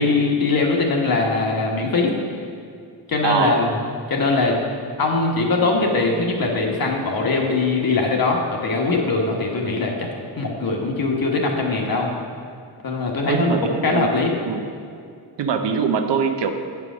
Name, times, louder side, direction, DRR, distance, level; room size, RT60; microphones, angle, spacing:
voice 1, 0.0-2.1 3.1-3.7 4.1-4.5 5.0-9.9 10.4-12.1 12.8-14.3, left 3 dB, 55° left, 0 dB, 1.3 m, -21 dB
voice 2, 3.2-3.6 13.3-14.1 14.4-14.6 15.4-16.5, right 6 dB, 85° right, 6 dB, 0.8 m, -22 dB
8.6 x 4.8 x 6.2 m, 2.4 s
wide cardioid pair, 145°, 41 cm